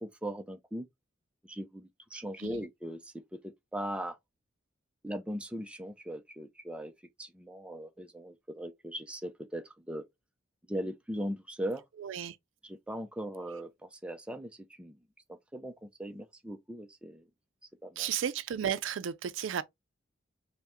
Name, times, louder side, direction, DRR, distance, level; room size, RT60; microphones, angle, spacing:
voice 1, 0.0-0.9 1.4-4.2 5.0-6.9 7.2-10.0 10.7-11.8 12.6-15.0 15.3-17.3 17.8-18.1, equal, 5° right, 0.4 m, -39 dB
voice 2, 12.0-12.4 18.0-19.6, right 8 dB, 85° right, 0.4 m, -33 dB
5.6 x 2.1 x 2.9 m
head